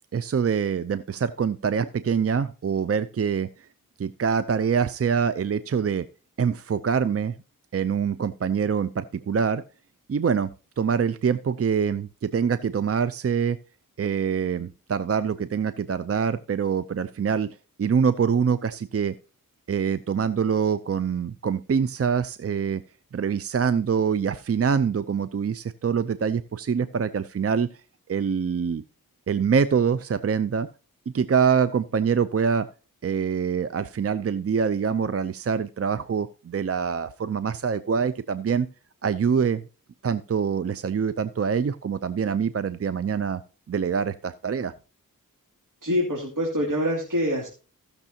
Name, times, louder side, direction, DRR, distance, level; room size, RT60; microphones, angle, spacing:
voice 1, 0.1-3.7 4.0-6.1 6.4-7.4 7.7-9.6 10.1-13.6 14.0-19.1 19.7-22.8 23.1-27.7 28.1-28.8 29.3-30.7 31.1-32.7 33.0-38.7 39.0-39.6 40.0-43.4 43.7-44.7, right 6 dB, 45° right, 14 dB, 0.6 m, -25 dB
voice 2, 45.8-47.5, equal, 60° right, -2 dB, 2.7 m, -25 dB
16.0 x 6.7 x 2.8 m, 0.34 s
cardioid pair, 50°, 35 cm